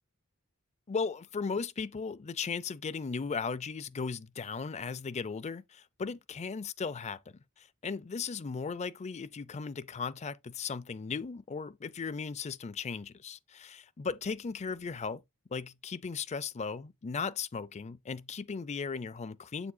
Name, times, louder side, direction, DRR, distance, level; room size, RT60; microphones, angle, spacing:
voice 1, 0.9-7.2 7.6-15.2 15.5-19.7, left 5 dB, 30° left, 0.4 m, -37 dB
7.1 x 7.0 x 2.2 m
head